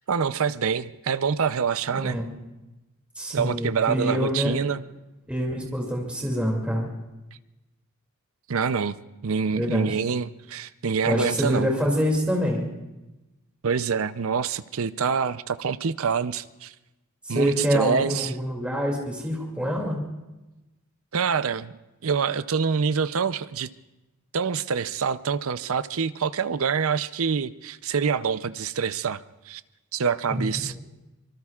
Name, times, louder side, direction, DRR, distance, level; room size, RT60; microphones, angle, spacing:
voice 1, 0.1-2.2 3.3-4.8 8.5-9.0 9.2-11.7 13.6-16.7 17.3-18.3 21.1-21.7 22.0-23.7 24.3-29.2 29.5-29.6 29.9-30.8, right 6 dB, 65° right, 14 dB, 0.6 m, -26 dB
voice 2, 1.9-2.3 3.2-4.6 5.3-6.9 9.5-9.9 11.0-12.7 17.2-20.0 30.3-30.5, equal, 5° right, -2 dB, 2.5 m, -26 dB
25.5 x 23.5 x 2.4 m, 1.0 s
head